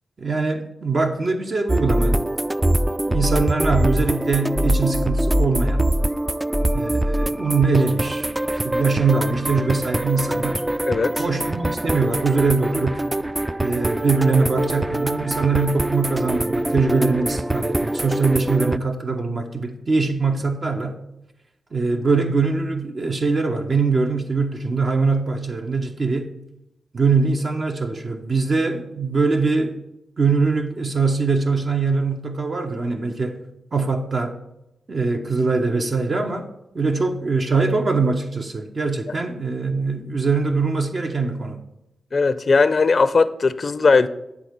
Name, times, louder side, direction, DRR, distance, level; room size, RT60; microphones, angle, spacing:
voice 1, 0.2-2.2 3.0-5.8 6.7-8.3 8.6-10.6 11.2-13.0 13.6-20.9 21.7-26.3 26.9-29.8 30.2-33.4 33.7-34.4 34.9-36.5 36.7-41.6, right 4 dB, 50° right, 0.8 m, -22 dB
sound 1, 1.7-18.8, right 1 dB, 15° right, 0.3 m, -23 dB
voice 2, 10.9-11.2 42.1-44.1, left 4 dB, 55° left, 0.4 m, -18 dB
9.6 x 3.6 x 6.6 m
supercardioid pair, 45°, 0 cm